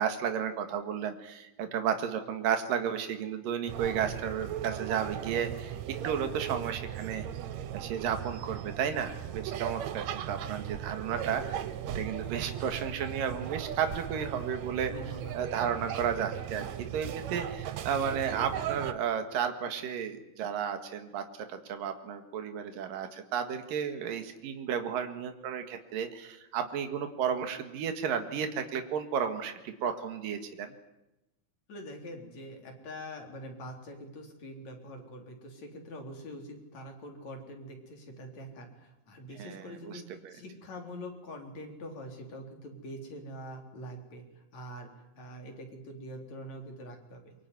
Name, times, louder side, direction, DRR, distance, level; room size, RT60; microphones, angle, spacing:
voice 1, 0.0-5.8 6.0-7.3 7.7-11.6 11.9-14.9 15.3-16.7 16.9-21.2 21.5-30.7 39.4-39.9, right 8 dB, 85° right, 7 dB, 3.4 m, -33 dB
sound 1, 3.7-18.9, right 10 dB, 65° right, 2.1 m, -37 dB
voice 2, 14.9-15.3 31.7-47.3, equal, 55° left, 3 dB, 4.9 m, -44 dB
23.5 x 22.5 x 9.6 m, 0.93 s
omnidirectional pair, 3.8 m